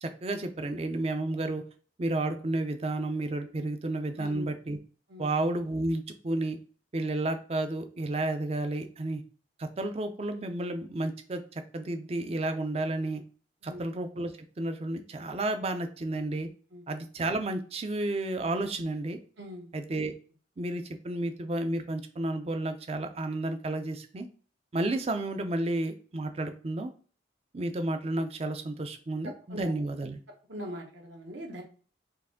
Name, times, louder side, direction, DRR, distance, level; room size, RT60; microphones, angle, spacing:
voice 1, 0.0-1.6 2.0-4.8 5.2-6.6 6.9-9.2 9.6-13.2 13.6-16.5 16.9-19.2 19.7-20.1 20.6-24.3 24.7-26.9 27.5-30.2, right 2 dB, 30° right, 7 dB, 0.4 m, -31 dB
voice 2, 4.2-4.5 5.1-5.3 13.6-13.9 16.7-16.8 19.4-19.7 29.5-29.7 30.5-31.6, equal, 75° right, 0 dB, 1.2 m, -41 dB
4.6 x 2.5 x 3.6 m, 0.41 s
head